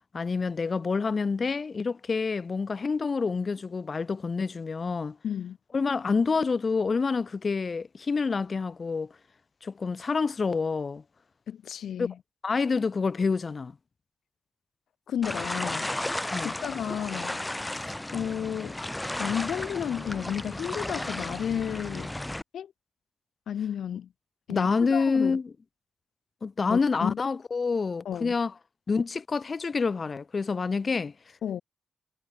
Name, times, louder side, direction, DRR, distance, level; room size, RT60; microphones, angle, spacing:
voice 1, 0.1-5.2 5.7-9.1 9.6-11.0 12.0-12.1 12.4-13.7 16.3-16.5 24.5-25.4 26.4-28.5 28.9-31.1, left 4 dB, 35° left, 1.3 m, -27 dB
voice 2, 5.2-5.6 11.5-12.2 15.1-16.0 16.4-17.4 17.7-18.8 19.2-22.1 22.5-22.7 23.5-24.1 24.5-25.4 26.7-27.2 28.0-28.3 31.4-31.6, left 9 dB, 80° left, 1.0 m, -32 dB
sound 1, 15.2-22.4, left 1 dB, 10° left, 1.1 m, -34 dB
wide cardioid pair, 140°, 0 cm